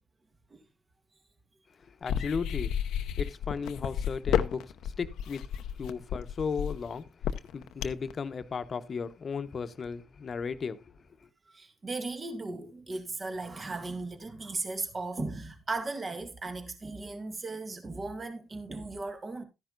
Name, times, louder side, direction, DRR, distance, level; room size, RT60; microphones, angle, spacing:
voice 1, 1.9-2.8 3.2-5.4 5.8-7.1 7.5-10.8, left 5 dB, 50° left, 0.9 m, -35 dB
sound 1, 2.0-8.1, left 9 dB, 75° left, 0.6 m, -31 dB
voice 2, 11.5-19.4, right 3 dB, 35° right, 1.9 m, -37 dB
13.0 x 10.5 x 2.5 m
supercardioid pair, 55°, 0 cm